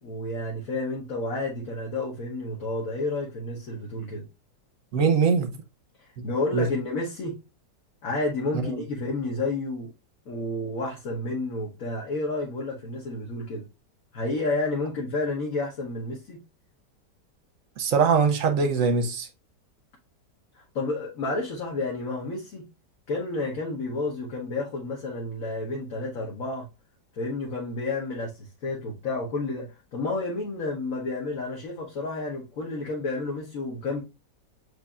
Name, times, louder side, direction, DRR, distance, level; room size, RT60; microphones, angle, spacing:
voice 1, 0.0-4.2 6.0-7.4 8.0-9.9 10.3-13.7 14.1-16.4 20.5-22.6 23.1-26.7 27.1-34.0, left 2 dB, 55° left, 1.4 m, -30 dB
voice 2, 4.9-5.5 6.5-6.7 8.6-8.8 17.8-19.3, right 5 dB, 60° right, 1.0 m, -22 dB
7.9 x 2.7 x 2.3 m
omnidirectional pair, 1.9 m